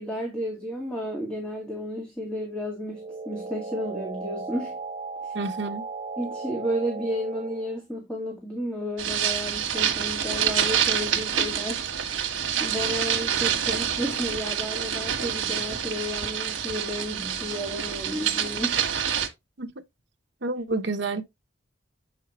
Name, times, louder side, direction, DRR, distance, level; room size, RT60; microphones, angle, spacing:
voice 1, 0.0-4.8 5.2-5.3 6.2-11.9 12.2-18.8, equal, 5° left, 1.9 m, -32 dB
sound 1, 2.9-7.8, right 3 dB, 25° right, 1.0 m, -36 dB
voice 2, 5.3-5.9 19.6-19.7 20.4-21.2, right 3 dB, 65° right, 1.0 m, -29 dB
sound 2, 9.0-19.3, right 8 dB, 85° right, 1.4 m, -27 dB
8.1 x 5.6 x 3.0 m
head